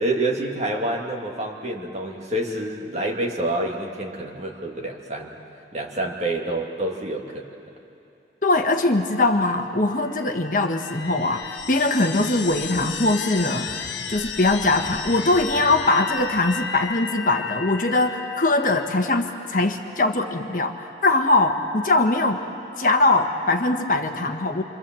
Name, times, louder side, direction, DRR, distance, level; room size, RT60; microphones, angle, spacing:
voice 1, 0.0-5.3 5.7-7.5, right 1 dB, 35° right, 0 dB, 2.3 m, -27 dB
voice 2, 8.4-20.8 21.0-22.4 22.8-24.6, left 2 dB, 45° left, 4 dB, 1.3 m, -21 dB
scary sky pad, 10.0-19.3, left 6 dB, 85° left, 1.2 m, -34 dB
26.5 x 25.5 x 7.7 m, 2.7 s
head